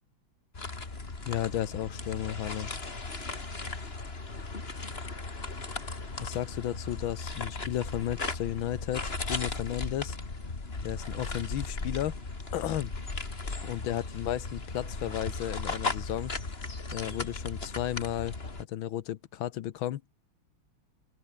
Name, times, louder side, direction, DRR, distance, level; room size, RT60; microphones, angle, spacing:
sound 1, 0.5-18.6, left 3 dB, 30° left, 2.8 m, -37 dB
voice 1, 1.3-2.7 6.2-10.2 10.8-12.2 12.5-12.9 13.6-16.3 16.9-18.3 18.7-20.0, left 12 dB, 75° left, 1.6 m, -33 dB
open air
omnidirectional pair, 2.3 m